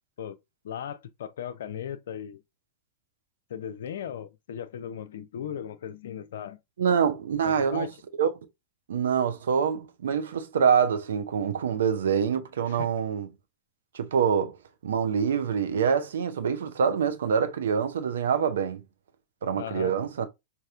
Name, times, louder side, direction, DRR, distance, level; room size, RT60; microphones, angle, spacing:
voice 1, 0.6-2.4 3.5-6.6 7.4-8.0 12.7-12.9 19.5-20.0, left 9 dB, 60° left, 0.4 m, -37 dB
voice 2, 6.8-7.9 8.2-8.3 8.9-13.3 13.9-14.6 14.8-18.8 19.4-20.3, right 7 dB, 65° right, 0.6 m, -25 dB
5.3 x 2.7 x 2.4 m
figure-of-eight pair, 90°, 0 cm